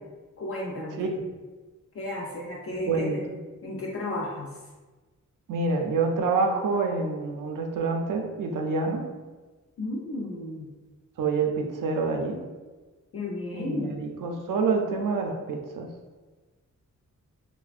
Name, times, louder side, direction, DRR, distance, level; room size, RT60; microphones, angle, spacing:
voice 1, 0.4-1.0 1.9-3.2 3.6-4.6 9.8-10.7 13.1-14.0, left 1 dB, 45° left, -4 dB, 0.4 m, -33 dB
voice 2, 1.0-1.3 2.7-3.3 5.5-9.0 11.2-12.4 13.5-15.9, right 4 dB, 85° right, 2 dB, 0.5 m, -27 dB
3.2 x 2.1 x 2.3 m, 1.3 s
wide cardioid pair, 115°, 31 cm